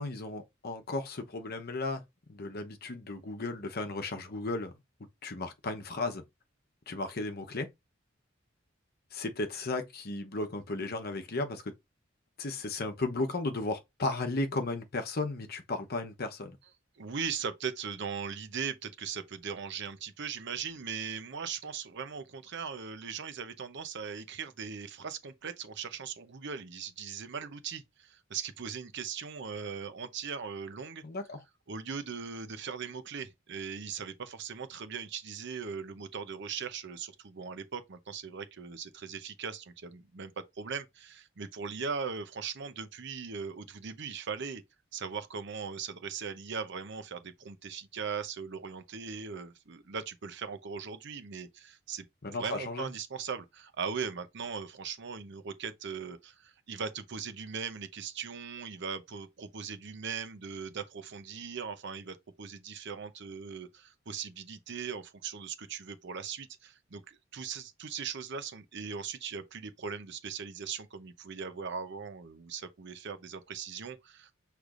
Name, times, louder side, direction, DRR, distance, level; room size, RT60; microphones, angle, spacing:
voice 1, 0.0-2.0 2.3-4.7 5.2-6.2 6.9-7.7 9.1-11.7 12.4-16.6 31.0-31.4 52.2-52.9, left 2 dB, 50° left, 0.9 m, -35 dB
voice 2, 17.0-31.0 31.7-44.6 44.9-52.1 52.4-74.3, right 6 dB, 65° right, 0.7 m, -39 dB
6.5 x 3.3 x 2.5 m
head